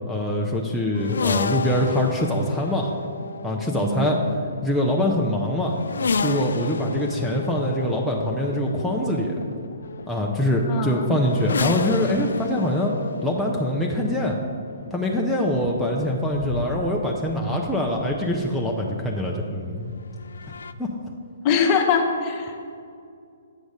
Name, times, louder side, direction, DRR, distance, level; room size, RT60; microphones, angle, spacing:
voice 1, 0.1-2.9 3.4-4.2 4.6-5.7 6.2-9.4 10.1-12.9 13.2-14.4 14.9-19.9 20.8-20.9, left 1 dB, ahead, -4 dB, 0.6 m, -24 dB
sound 1, 0.9-18.7 19.8-20.7, left 4 dB, 70° left, 0.3 m, -32 dB
voice 2, 3.7-4.2 10.7-11.1 21.4-22.6, left 5 dB, 35° left, 3 dB, 0.9 m, -23 dB
8.2 x 5.1 x 4.9 m, 2.4 s
figure-of-eight pair, 130°, 0 cm